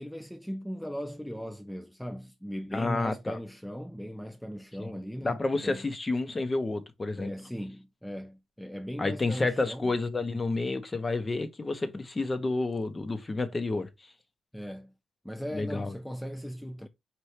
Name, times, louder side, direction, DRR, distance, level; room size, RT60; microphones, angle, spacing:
voice 1, 0.0-5.8 7.2-9.9 14.5-14.9 15.2-16.9, equal, ahead, 0.4 m, -38 dB
voice 2, 2.7-3.4 4.8-4.9 5.2-7.3 9.0-14.1 15.5-15.9, left 3 dB, 25° left, 0.7 m, -30 dB
4.4 x 2.6 x 3.2 m
cardioid pair, 75°, 0 cm